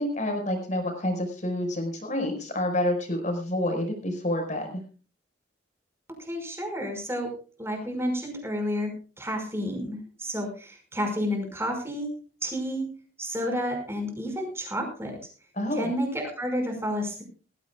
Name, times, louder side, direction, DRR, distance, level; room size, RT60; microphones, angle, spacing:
voice 1, 0.0-4.8 15.6-15.9, left 1 dB, 40° left, 4 dB, 5.2 m, -28 dB
voice 2, 6.1-7.3 7.6-12.1 12.4-12.8 13.2-15.2 15.7-17.2, equal, 15° right, 4 dB, 5.5 m, -30 dB
19.5 x 16.5 x 2.4 m, 0.36 s
head